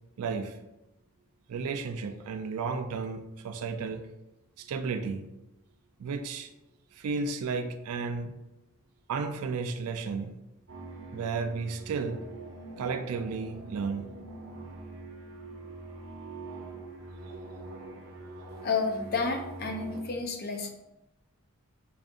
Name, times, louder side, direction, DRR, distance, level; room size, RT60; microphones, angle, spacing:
voice 1, 0.2-0.6 1.5-4.1 4.6-5.3 6.0-6.5 6.9-8.4 9.1-10.4 11.1-12.3 12.8-14.1, right 4 dB, 85° right, 9 dB, 0.4 m, -33 dB
sound 1, 10.7-20.0, right 3 dB, 60° right, 0.7 m, -44 dB
voice 2, 18.6-20.7, left 4 dB, 45° left, 4 dB, 0.4 m, -30 dB
4.8 x 2.6 x 2.4 m, 0.95 s
head